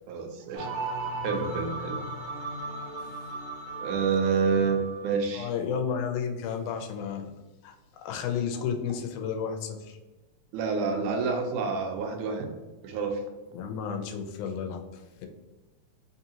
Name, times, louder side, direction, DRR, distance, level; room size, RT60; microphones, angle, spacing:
voice 1, 0.1-0.7 1.2-2.0 3.8-5.5 10.5-12.6 12.8-13.2, right 5 dB, 90° right, 4 dB, 2.1 m, -28 dB
sound 1, 0.5-5.1, right 2 dB, 70° right, 1.2 m, -36 dB
voice 2, 5.3-7.3 7.6-7.8 8.0-10.0 13.5-15.3, left 7 dB, 85° left, 5 dB, 2.0 m, -32 dB
4.8 x 2.7 x 2.7 m, 1.2 s
omnidirectional pair, 3.5 m